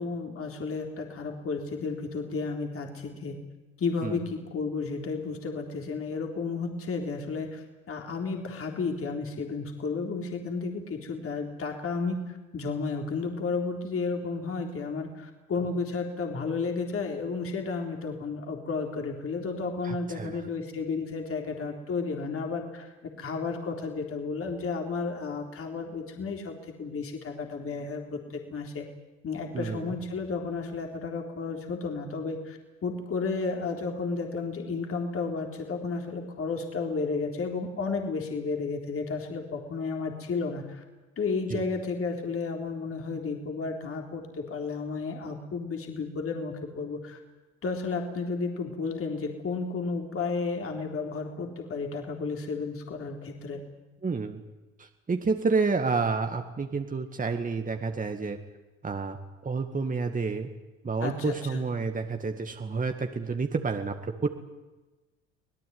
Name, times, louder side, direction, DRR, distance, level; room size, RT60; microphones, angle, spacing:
voice 1, 0.0-3.4 3.8-28.9 29.2-40.8 41.2-47.2 47.6-53.6 61.0-61.6, left 4 dB, 45° left, 2 dB, 3.9 m, -32 dB
voice 2, 19.8-20.4 29.5-30.0 41.5-41.6 54.0-54.4 54.8-58.4 58.8-59.2 59.4-60.5 60.8-64.3, right 4 dB, 25° right, 5 dB, 2.0 m, -29 dB
26.0 x 18.0 x 9.6 m, 1.1 s
supercardioid pair, 70°, 32 cm